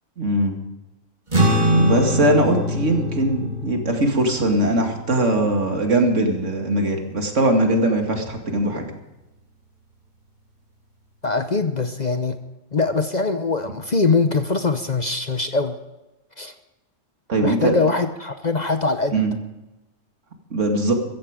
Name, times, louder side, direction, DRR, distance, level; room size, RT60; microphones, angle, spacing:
voice 1, 0.2-0.6 1.7-8.8 17.3-17.7 19.1-19.3 20.5-20.9, right 1 dB, 70° right, 3 dB, 2.6 m, -20 dB
sound 1, 1.3-7.9, equal, 35° right, 2.9 m, -24 dB
voice 2, 11.2-12.4 12.7-15.8 16.4-16.5 17.4-19.2, left 3 dB, 40° left, 9 dB, 0.9 m, -22 dB
15.5 x 15.0 x 5.1 m, 1.0 s
omnidirectional pair, 1.3 m